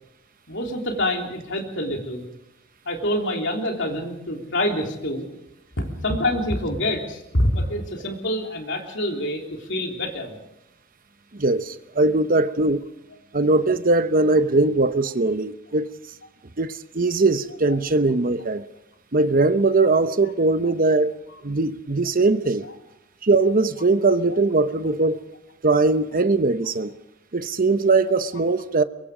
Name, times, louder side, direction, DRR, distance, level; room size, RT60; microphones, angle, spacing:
voice 1, 0.5-2.2 2.8-5.2 5.8-10.4, left 1 dB, 60° left, 3.5 m, -26 dB
voice 2, 11.3-12.8 13.3-15.9 16.6-18.6 19.1-21.1 21.4-22.7 23.2-25.2 25.6-26.9 27.3-28.8, right 3 dB, 45° right, 0.9 m, -20 dB
23.5 x 22.0 x 5.0 m
head